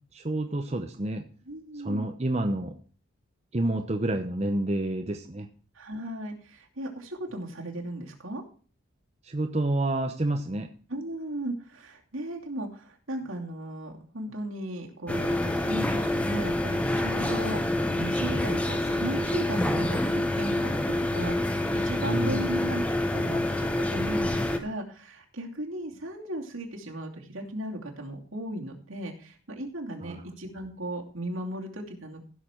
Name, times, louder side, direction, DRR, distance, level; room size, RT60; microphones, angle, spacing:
voice 1, 0.1-1.2 1.7-2.8 3.5-5.5 9.2-10.7 22.1-22.5 30.0-30.2, right 1 dB, 30° right, 6 dB, 0.7 m, -29 dB
voice 2, 1.5-2.1 5.7-8.4 10.9-22.8 23.1-32.2, right 1 dB, 80° right, 0 dB, 2.7 m, -36 dB
sound 1, 15.1-24.6, left 1 dB, 5° left, 0.9 m, -27 dB
16.0 x 6.7 x 4.4 m, 0.41 s
head